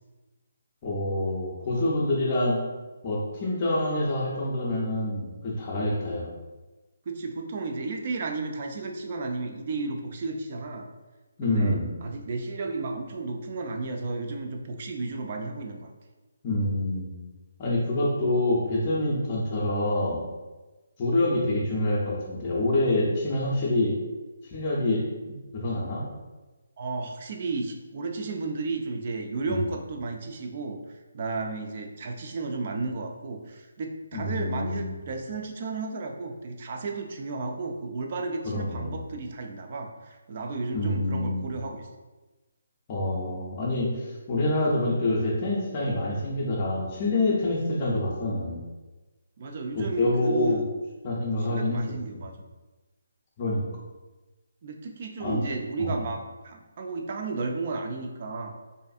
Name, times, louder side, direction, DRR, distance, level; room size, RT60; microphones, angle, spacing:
voice 1, 0.8-2.6 3.0-6.3 11.4-11.9 16.4-17.1 17.6-20.2 21.0-23.9 24.5-26.1 29.5-29.6 34.1-35.0 38.4-39.0 40.7-41.5 42.9-48.6 49.7-50.6 51.0-51.8 52.1-52.2 53.4-53.6 55.2-55.4 55.8-56.0, left 1 dB, 25° left, -6 dB, 0.5 m, -26 dB
voice 2, 7.1-10.9 11.4-15.9 26.8-30.8 31.1-41.8 49.4-50.7 51.4-52.3 54.6-58.6, right 3 dB, 40° right, 4 dB, 0.3 m, -33 dB
2.5 x 2.5 x 2.3 m, 1.2 s
hypercardioid pair, 165°, 0 cm